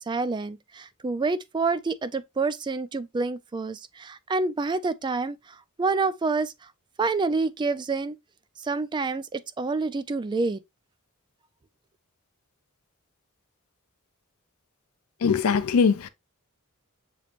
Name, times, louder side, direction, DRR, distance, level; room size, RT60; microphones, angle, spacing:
voice 1, 0.0-5.4 5.8-6.5 7.0-8.2 8.6-10.6, right 3 dB, 20° right, 0.3 m, -27 dB
voice 2, 15.2-16.1, left 5 dB, 75° left, 0.5 m, -21 dB
6.8 x 3.1 x 2.4 m
head